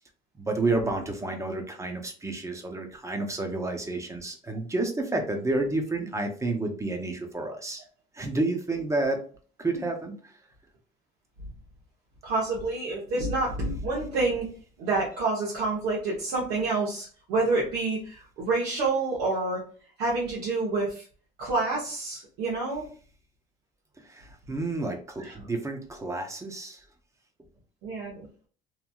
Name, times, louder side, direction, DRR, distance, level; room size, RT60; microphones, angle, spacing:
voice 1, 0.4-7.8 8.1-9.2 9.6-10.2 24.1-26.8, right 2 dB, 15° right, 4 dB, 0.6 m, -30 dB
voice 2, 12.2-14.4 14.8-19.6 20.0-21.1 21.4-22.8 25.2-25.3 27.8-28.5, right 3 dB, 90° right, -5 dB, 0.9 m, -28 dB
3.0 x 2.6 x 2.2 m, 0.42 s
cardioid pair, 110°, 17 cm